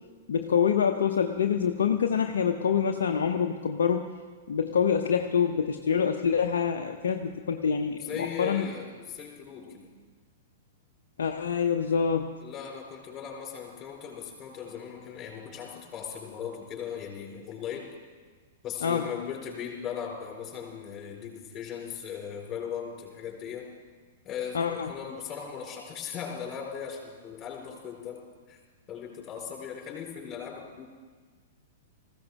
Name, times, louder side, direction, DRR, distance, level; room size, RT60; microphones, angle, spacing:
voice 1, 0.3-4.0 4.5-8.7 11.2-12.3 18.8-19.1 24.5-24.9, left 7 dB, 60° left, 4 dB, 0.8 m, -26 dB
voice 2, 8.0-10.0 12.4-17.9 18.6-23.7 24.2-28.6 28.9-30.8, left 7 dB, 25° left, -1 dB, 4.4 m, -38 dB
20.0 x 15.5 x 3.6 m, 1.5 s
figure-of-eight pair, 105°, 0 cm